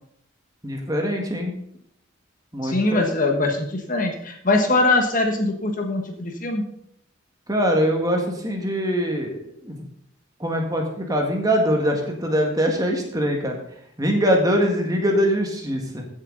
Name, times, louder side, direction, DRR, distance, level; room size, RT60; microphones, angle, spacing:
voice 1, 0.6-1.5 2.5-3.0 7.5-9.4 9.6-9.9 10.4-13.6 14.0-16.1, equal, 20° right, 2 dB, 1.8 m, -22 dB
voice 2, 2.6-6.6, left 2 dB, 40° left, 4 dB, 1.4 m, -22 dB
15.0 x 7.3 x 3.9 m, 0.71 s
head